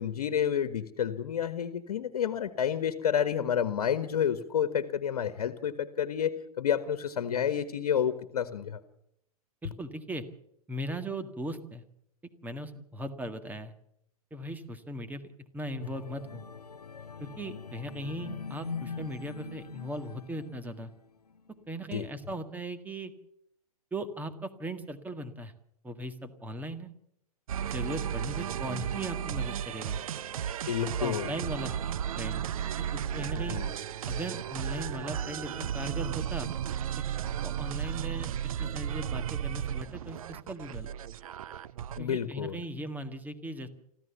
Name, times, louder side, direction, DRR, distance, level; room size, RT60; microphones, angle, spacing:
voice 1, 0.0-8.8 21.9-22.1 30.7-31.3 33.3-33.7 41.9-42.6, left 8 dB, 65° left, 11 dB, 1.5 m, -30 dB
voice 2, 9.6-10.2 10.7-11.8 12.4-13.7 14.3-15.2 15.5-16.4 17.2-20.9 21.7-23.1 23.9-25.5 25.8-26.9 27.7-30.0 30.8-31.8 32.2-32.4 32.9-33.6 34.0-36.5 37.4-38.3 38.6-40.9 42.0-43.7, right 1 dB, 10° right, 9 dB, 1.8 m, -38 dB
sound 1, 15.8-21.0 21.5-21.7, left 5 dB, 90° left, 0.9 m, -42 dB
sound 2, 27.5-42.0, right 9 dB, 65° right, 0.8 m, -34 dB
25.5 x 15.0 x 7.1 m, 0.78 s
figure-of-eight pair, 110°, 20 cm